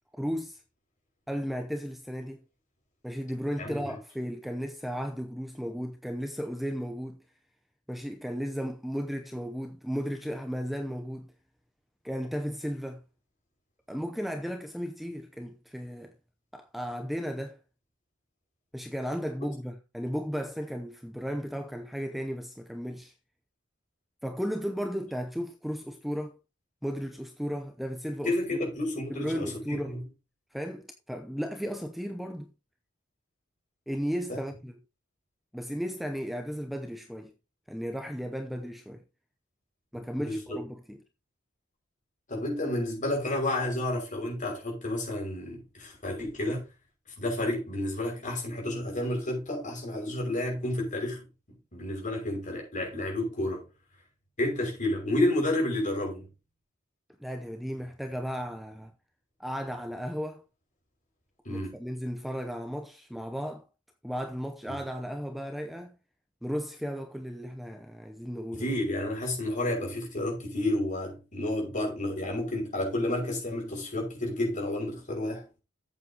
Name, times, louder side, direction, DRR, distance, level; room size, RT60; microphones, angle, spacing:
voice 1, 0.2-0.6 1.3-2.4 3.0-7.2 7.9-11.3 12.0-13.0 13.9-16.1 16.5-17.6 18.7-23.1 24.2-26.4 26.8-28.6 29.1-30.0 30.5-32.5 33.9-34.8 35.5-37.3 37.7-39.0 39.9-41.0 57.2-58.9 59.4-60.4 61.5-63.7 64.0-66.0 66.4-68.7, equal, ahead, 0.7 m, -35 dB
voice 2, 3.6-3.9 28.2-30.0 34.3-34.4 40.2-40.6 42.3-46.6 47.2-53.7 54.4-56.3 61.4-61.7 64.7-64.8 68.5-75.4, left 1 dB, 40° left, 5.7 m, -31 dB
12.5 x 8.2 x 2.9 m
head